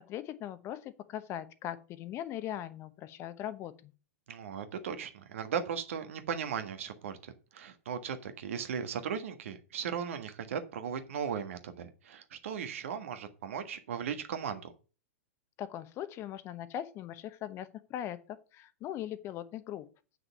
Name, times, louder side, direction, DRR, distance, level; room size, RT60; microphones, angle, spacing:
voice 1, 0.1-3.9 15.6-19.9, left 11 dB, 35° left, 0.9 m, -40 dB
voice 2, 4.3-14.7, right 7 dB, 65° right, 1.6 m, -37 dB
7.8 x 6.1 x 7.0 m
figure-of-eight pair, 100°, 8 cm